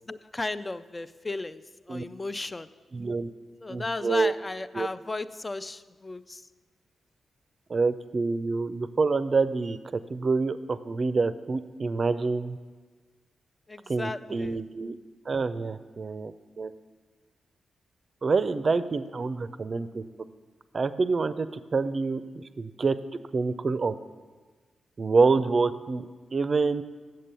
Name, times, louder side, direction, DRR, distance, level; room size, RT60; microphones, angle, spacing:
voice 1, 0.1-1.6 1.9-2.7 3.6-6.5 13.7-14.6, left 2 dB, 30° left, 13 dB, 0.4 m, -35 dB
voice 2, 2.9-3.3 3.7-4.3 4.7-4.9 7.7-9.8 10.1-12.6 13.9-15.0 15.3-16.7 18.2-20.1 20.7-21.5 21.7-23.0 23.3-23.9 25.0-26.8, right 4 dB, 50° right, 12 dB, 0.5 m, -27 dB
7.6 x 7.5 x 6.7 m, 1.4 s
supercardioid pair, 45°, 0 cm